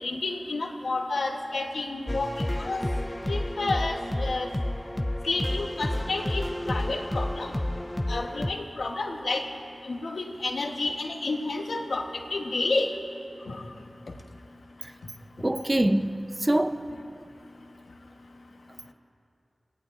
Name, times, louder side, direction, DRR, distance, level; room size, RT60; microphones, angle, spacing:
voice 1, 0.0-2.9 3.3-4.5 5.2-6.4 6.7-7.6 8.1-9.4 9.8-12.9 13.5-13.6, left 3 dB, 85° left, 1.2 m, -30 dB
sound 1, 2.1-8.5, left 1 dB, 15° left, 0.4 m, -30 dB
voice 2, 15.4-16.8, right 1 dB, 25° right, 0.7 m, -24 dB
30.0 x 17.0 x 2.6 m
wide cardioid pair, 60°, 0 cm